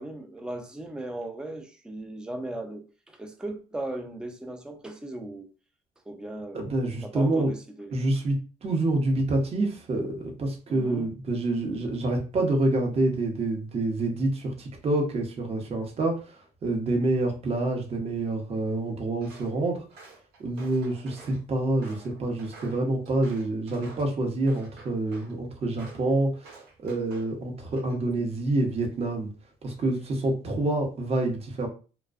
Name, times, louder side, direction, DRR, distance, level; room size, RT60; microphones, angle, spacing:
voice 1, 0.0-5.5 6.1-7.9 10.7-11.1, right 1 dB, 5° right, 0.4 m, -37 dB
voice 2, 6.5-7.5 7.9-19.8 20.4-29.3 29.6-31.7, right 2 dB, 35° right, 0.7 m, -27 dB
Walk footsteps, 19.2-19.5 19.9-21.4 21.8-24.1 24.5-25.3 25.8-26.1 26.4-27.3 27.7-28.1, right 3 dB, 80° right, 1.0 m, -49 dB
2.5 x 2.1 x 2.4 m
cardioid pair, 110°, 17 cm